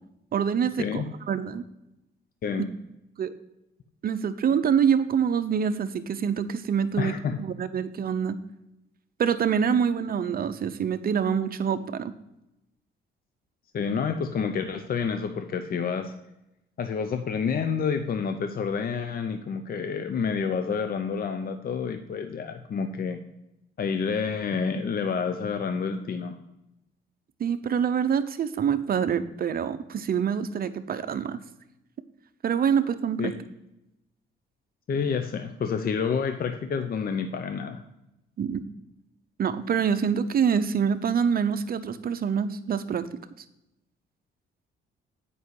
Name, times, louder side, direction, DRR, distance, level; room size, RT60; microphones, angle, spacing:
voice 1, 0.3-1.6 3.2-3.3 4.0-7.1 7.4-8.4 9.2-12.1 27.4-31.4 32.4-33.3 38.4-38.6 39.4-43.1, right 7 dB, 50° right, 10 dB, 0.7 m, -26 dB
voice 2, 7.0-7.4 13.7-16.1 16.8-23.2 23.8-26.4 33.2-33.4 34.9-37.8, left 6 dB, 50° left, 8 dB, 0.7 m, -29 dB
8.3 x 5.5 x 4.7 m, 0.89 s
cardioid pair, 90°, 20 cm